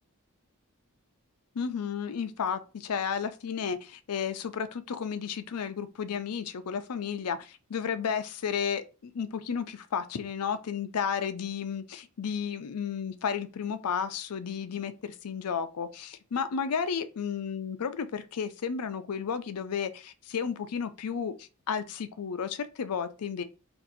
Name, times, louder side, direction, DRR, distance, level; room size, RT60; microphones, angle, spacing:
voice 1, 1.5-23.4, left 7 dB, 80° left, 0.5 m, -33 dB
2.6 x 2.5 x 3.9 m
head